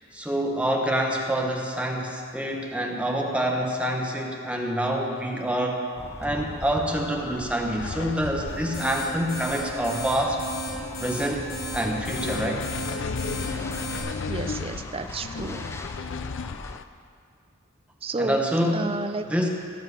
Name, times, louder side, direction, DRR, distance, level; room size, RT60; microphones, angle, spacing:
voice 1, 0.1-5.8 6.2-10.4 11.0-11.5 11.7-12.6 18.2-19.0 19.3-19.5, equal, 5° right, 0 dB, 1.2 m, -26 dB
sound 1, 6.0-16.8, left 1 dB, 15° left, 0.6 m, -40 dB
sound 2, 7.8-16.8, left 5 dB, 70° left, 0.4 m, -35 dB
sound 3, 8.5-14.0, equal, 85° left, 4.1 m, -35 dB
voice 2, 14.3-15.7 18.0-18.4 18.7-19.5, right 2 dB, 30° right, 8 dB, 0.6 m, -31 dB
17.5 x 7.3 x 6.7 m, 2.2 s
head